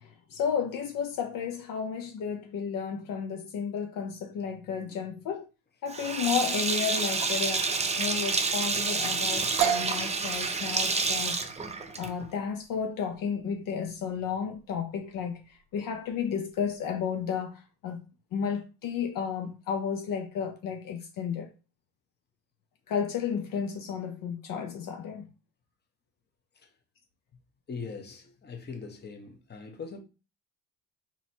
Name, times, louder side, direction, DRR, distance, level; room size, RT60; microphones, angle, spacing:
voice 1, 0.0-5.5 5.8-7.7 8.0-11.4 12.0-18.0 18.3-21.5 22.9-25.3, left 7 dB, 55° left, 0.7 m, -32 dB
Sink (filling or washing), 5.9-12.3, right 4 dB, 15° right, 0.6 m, -29 dB
sound 1, 9.6-17.2, right 11 dB, 80° right, 0.6 m, -36 dB
voice 2, 27.7-30.0, left 5 dB, 25° left, 1.0 m, -41 dB
3.9 x 3.0 x 2.8 m
supercardioid pair, 80°, 39 cm